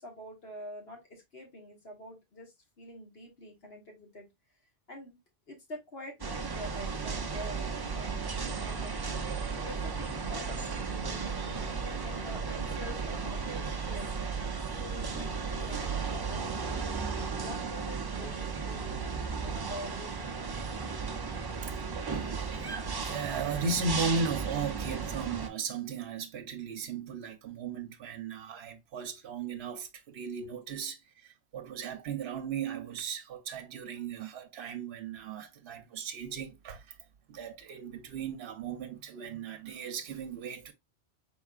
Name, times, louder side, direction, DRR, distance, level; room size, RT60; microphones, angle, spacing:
voice 1, 0.0-4.3 4.9-5.2 5.5-8.9 9.6-14.1 14.6-18.9 19.4-20.5, left 1 dB, 55° left, 1.7 m, -46 dB
sound 1, 6.2-25.5, right 5 dB, 40° right, 0.3 m, -35 dB
voice 2, 22.1-36.9 37.3-40.7, right 5 dB, 65° right, 0.9 m, -36 dB
4.6 x 3.8 x 2.4 m
omnidirectional pair, 1.2 m